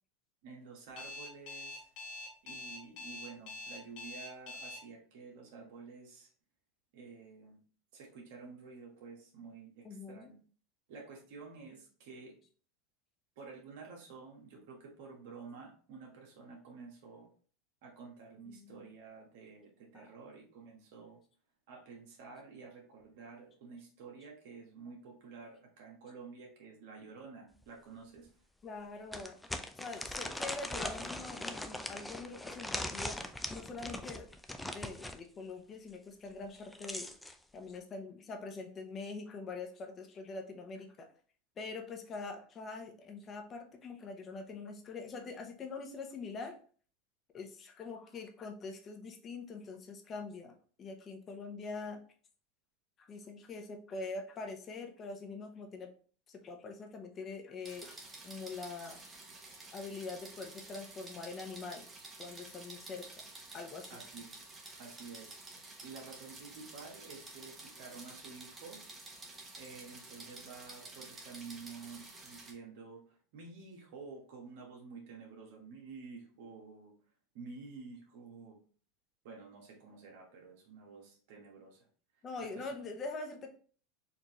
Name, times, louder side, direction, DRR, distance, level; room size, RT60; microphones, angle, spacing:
voice 1, 0.4-1.9 2.4-6.3 6.9-7.6 7.9-10.4 10.9-12.4 13.4-17.3 17.8-21.2 21.7-28.3 63.9-64.3 64.8-68.8 69.5-76.9 77.3-78.6 79.2-81.9 82.4-82.7, right 4 dB, 70° right, 0 dB, 1.3 m, -50 dB
Alarm, 1.0-4.8, left 2 dB, 60° left, 1.5 m, -44 dB
voice 2, 9.8-10.3 18.5-18.9 19.9-20.1 28.6-29.4 29.8-33.2 33.5-34.3 34.7-37.1 37.5-41.1 41.6-46.6 47.3-52.0 53.0-55.9 56.3-58.0 58.2-59.0 59.7-61.9 62.2-63.1 63.5-64.0 82.2-83.6, left 4 dB, 30° left, 4 dB, 0.9 m, -44 dB
sound 1, 27.6-27.7 28.2-28.3 29.1-35.2 36.4-37.4, left 1 dB, 5° left, 0.4 m, -40 dB
sound 2, 57.6-72.5, right 3 dB, 20° right, 1.1 m, -51 dB
4.5 x 2.7 x 3.0 m, 0.43 s
supercardioid pair, 115°, 0 cm